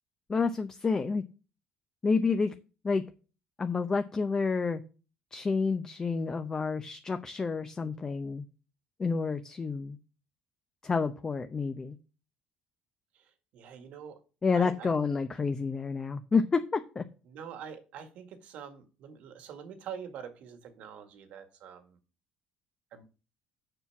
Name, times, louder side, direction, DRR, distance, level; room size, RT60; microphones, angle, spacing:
voice 1, 0.3-1.2 2.0-2.5 2.8-3.0 3.6-4.8 5.3-8.4 9.0-10.0 10.8-12.0 14.4-17.0, left 4 dB, 25° left, 8 dB, 0.7 m, -29 dB
voice 2, 13.1-14.2 14.5-14.9 17.3-22.0 22.9-23.0, right 8 dB, 70° right, 8 dB, 1.8 m, -45 dB
6.9 x 5.8 x 5.9 m, 0.35 s
cardioid pair, 100°, 2 cm